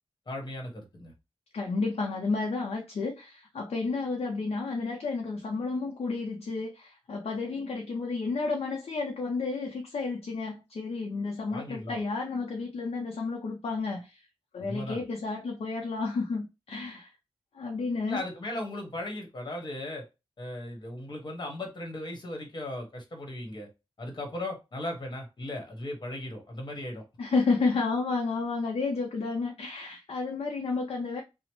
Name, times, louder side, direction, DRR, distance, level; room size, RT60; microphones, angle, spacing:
voice 1, 0.3-1.1 11.5-12.0 14.6-15.0 18.1-20.1 20.4-23.7 24.0-27.0, left 1 dB, 50° left, 1.1 m, -37 dB
voice 2, 1.5-14.3 14.5-17.1 17.5-18.2 27.2-31.2, left 4 dB, 85° left, 0.5 m, -31 dB
2.9 x 2.0 x 3.0 m
wide cardioid pair, 70°, 10 cm